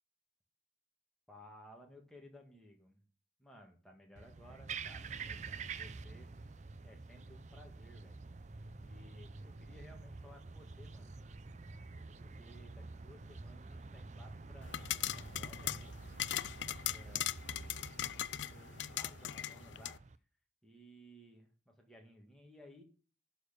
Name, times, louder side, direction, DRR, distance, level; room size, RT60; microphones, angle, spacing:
voice 1, 1.3-3.1 3.4-6.6 6.8-8.2 8.8-11.1 12.2-14.8 15.1-15.8 16.6-17.5 18.2-20.0 20.6-22.8, equal, 5° left, 0 dB, 1.7 m, -58 dB
sound 1, 4.2-20.2, right 4 dB, 40° right, 0.5 m, -48 dB
sound 2, 14.6-20.0, left 12 dB, 85° left, 0.4 m, -39 dB
11.5 x 4.3 x 6.7 m, 0.37 s
head